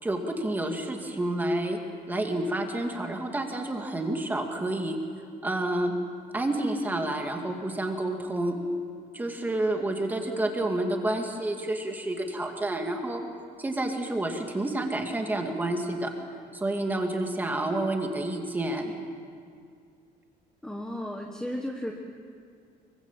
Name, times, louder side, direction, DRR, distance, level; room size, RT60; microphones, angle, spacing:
voice 1, 0.0-1.8 2.1-5.0 5.4-5.9 6.3-8.6 9.1-13.2 13.6-16.1 16.5-18.9, right 1 dB, 10° right, 3 dB, 2.3 m, -29 dB
voice 2, 20.6-21.9, left 1 dB, 5° left, 1 dB, 1.3 m, -34 dB
24.5 x 23.5 x 7.4 m, 2.3 s
cardioid pair, 165°, 16 cm